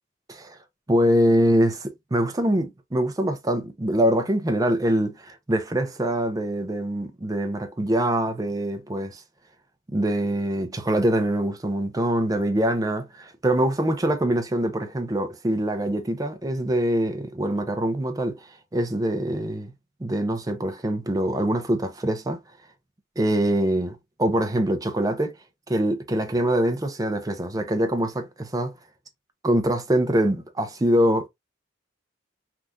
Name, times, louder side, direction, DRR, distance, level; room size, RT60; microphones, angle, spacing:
voice 1, 0.9-9.2 9.9-19.7 20.0-22.4 23.2-25.4 25.7-28.7 29.4-31.3, right 1 dB, 20° right, 0.5 m, -24 dB
3.4 x 2.5 x 2.4 m
head